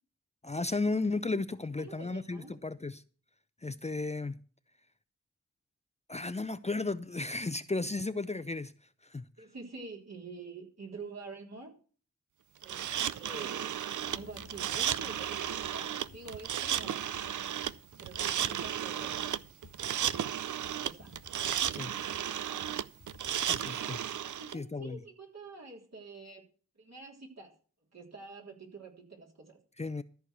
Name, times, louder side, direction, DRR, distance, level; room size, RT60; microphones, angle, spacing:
voice 1, 0.4-3.0 3.6-4.4 6.1-8.7 9.0-9.2 21.7-21.9 23.4-24.0 24.5-25.0 29.8-30.0, left 3 dB, 20° left, 0.6 m, -34 dB
voice 2, 1.8-2.5 9.4-11.7 12.6-13.8 14.1-17.0 18.0-19.3 20.7-21.1 24.2-26.4 26.8-27.5 27.9-29.6, right 3 dB, 60° right, 3.4 m, -47 dB
sound 1, 12.6-24.5, right 10 dB, 75° right, 0.5 m, -34 dB
sound 2, 14.0-21.0, left 9 dB, 75° left, 0.9 m, -59 dB
sound 3, 15.6-23.3, left 4 dB, 45° left, 1.2 m, -57 dB
13.5 x 4.6 x 8.0 m
cardioid pair, 40°, 30 cm